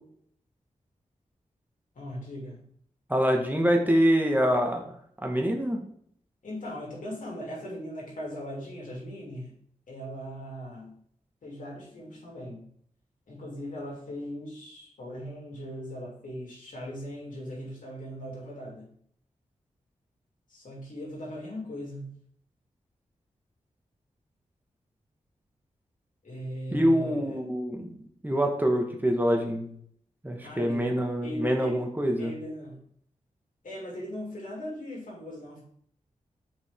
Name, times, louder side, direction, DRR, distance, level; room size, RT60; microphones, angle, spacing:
voice 1, 1.9-2.6 6.4-9.5 9.9-10.9 11.4-12.7 13.3-18.9 20.5-22.1 26.2-27.4 30.4-30.9 31.2-31.8 32.2-32.8 33.6-35.6, equal, 80° left, -3 dB, 3.1 m, -39 dB
voice 2, 3.1-4.9 5.2-5.8 26.7-29.7 30.2-32.3, equal, 15° right, 2 dB, 1.5 m, -25 dB
7.1 x 5.3 x 3.8 m, 0.63 s
cardioid pair, 65°, 13 cm